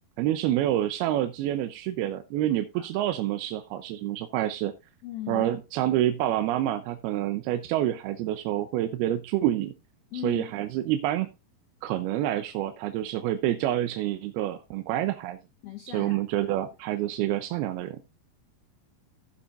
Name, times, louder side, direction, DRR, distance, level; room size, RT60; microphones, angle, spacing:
voice 1, 0.2-4.7 5.3-9.7 10.2-11.3 11.8-15.4 15.9-18.0, right 13 dB, 90° right, 2.7 m, -27 dB
voice 2, 5.0-5.5 10.1-10.4 15.6-16.5, left 12 dB, 80° left, 1.5 m, -38 dB
15.5 x 7.2 x 2.5 m
omnidirectional pair, 4.4 m